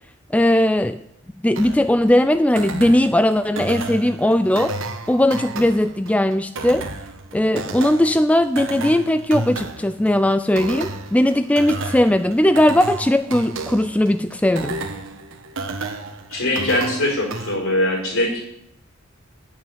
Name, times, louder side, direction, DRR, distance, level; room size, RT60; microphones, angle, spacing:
voice 1, 0.3-1.0 1.4-4.7 5.1-6.9 7.3-14.8, left 1 dB, 5° left, 10 dB, 0.4 m, -18 dB
sound 1, 1.6-17.6, right 3 dB, 65° right, 1.3 m, -32 dB
voice 2, 16.3-18.4, left 1 dB, 65° left, 1 dB, 5.0 m, -21 dB
9.6 x 8.4 x 9.1 m, 0.80 s
head